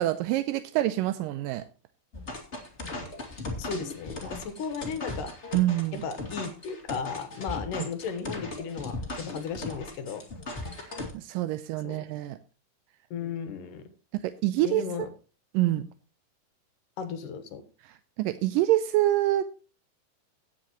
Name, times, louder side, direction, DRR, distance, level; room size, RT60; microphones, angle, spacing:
voice 1, 0.0-1.6 5.5-6.0 10.8-12.4 14.1-14.8 15.5-15.9 18.2-19.4, right 15 dB, 80° right, 11 dB, 2.0 m, -26 dB
sound 1, 2.1-11.1, left 2 dB, 25° left, 1.9 m, -37 dB
voice 2, 3.6-5.3 5.9-10.2 11.8-12.1 13.1-13.8 14.6-15.1 15.7-15.9 17.0-17.6, left 6 dB, 65° left, 9 dB, 2.6 m, -35 dB
17.0 x 7.7 x 3.0 m, 0.34 s
omnidirectional pair, 4.4 m